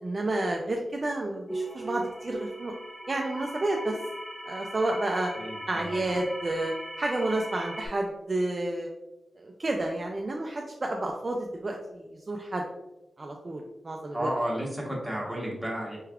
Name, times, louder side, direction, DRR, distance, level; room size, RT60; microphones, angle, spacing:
voice 1, 0.0-2.7 3.1-4.0 4.5-5.3 5.7-8.9 9.4-12.6 13.2-14.3, right 2 dB, 35° right, 1 dB, 0.4 m, -30 dB
sound 1, 1.5-7.9, right 1 dB, 15° left, 0.7 m, -38 dB
voice 2, 5.3-6.3 14.1-16.0, equal, 5° right, -4 dB, 1.2 m, -33 dB
4.5 x 3.3 x 2.3 m, 1.0 s
wide cardioid pair, 130°, 0 cm